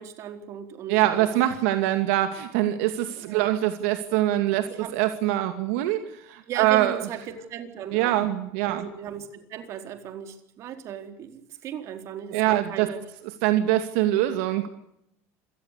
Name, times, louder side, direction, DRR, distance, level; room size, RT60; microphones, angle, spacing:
voice 1, 0.0-1.3 3.1-3.5 4.7-4.9 6.5-8.2 8.7-13.0, right 9 dB, 45° right, 7 dB, 4.2 m, -37 dB
voice 2, 0.9-4.7 4.9-6.0 6.3-7.0 7.9-8.8 12.3-12.9 13.4-14.7, right 14 dB, 80° right, 7 dB, 2.5 m, -23 dB
27.0 x 19.0 x 8.5 m, 0.75 s
cardioid pair, 145°, 7 cm